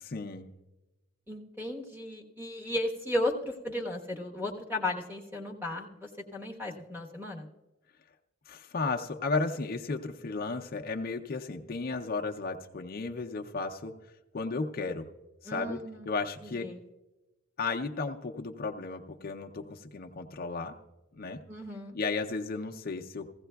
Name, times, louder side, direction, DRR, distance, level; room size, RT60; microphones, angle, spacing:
voice 1, 0.0-0.5 8.5-13.9 14.3-15.1 15.4-15.8 16.1-16.7 17.6-20.7 21.1-21.4 21.9-23.3, left 3 dB, 45° left, 2 dB, 0.5 m, -34 dB
voice 2, 1.3-7.5 15.4-16.1 16.4-16.8 21.5-22.0, left 1 dB, 10° right, 2 dB, 1.1 m, -35 dB
16.0 x 15.5 x 2.3 m, 1.1 s
head